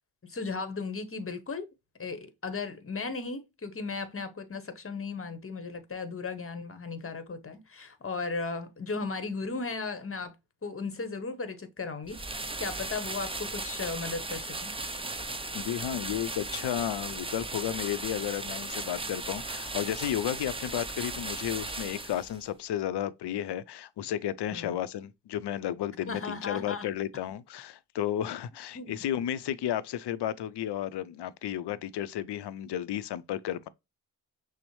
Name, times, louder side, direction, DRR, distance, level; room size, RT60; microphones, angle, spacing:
voice 1, 0.2-1.7 2.0-10.3 10.6-12.2 12.6-14.7 24.5-24.7 26.1-26.9 28.7-28.9, left 4 dB, 30° left, 1.0 m, -36 dB
sound 1, 12.1-22.5, right 2 dB, 15° right, 0.6 m, -37 dB
voice 2, 15.5-33.7, left 11 dB, 70° left, 0.5 m, -33 dB
6.1 x 2.1 x 3.0 m
cardioid pair, 60°, 42 cm